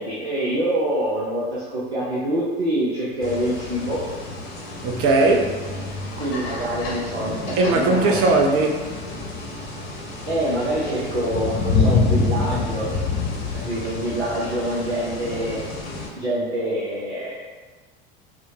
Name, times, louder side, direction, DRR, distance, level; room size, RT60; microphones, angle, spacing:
voice 1, 0.0-4.0 6.2-8.2 10.3-12.9 13.5-15.6 16.1-17.5, right 1 dB, 85° right, -7 dB, 0.6 m, -25 dB
sound 1, 3.2-16.1, left 3 dB, 65° left, 1.0 m, -28 dB
voice 2, 4.8-5.6 7.6-8.8, right 2 dB, 45° right, 2 dB, 0.7 m, -18 dB
6.0 x 2.1 x 2.7 m, 1.3 s
figure-of-eight pair, 70°, 32 cm